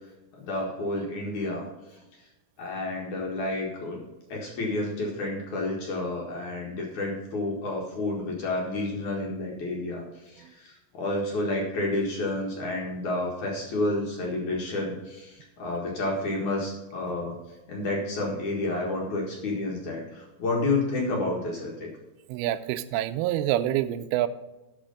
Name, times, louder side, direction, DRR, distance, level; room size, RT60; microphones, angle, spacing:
voice 1, 0.4-1.7 2.6-4.0 4.3-17.4 17.7-21.9, left 2 dB, 55° left, -2 dB, 2.6 m, -30 dB
voice 2, 22.3-24.3, right 13 dB, 80° right, 9 dB, 2.3 m, -27 dB
12.0 x 5.0 x 5.2 m, 1.1 s
omnidirectional pair, 4.8 m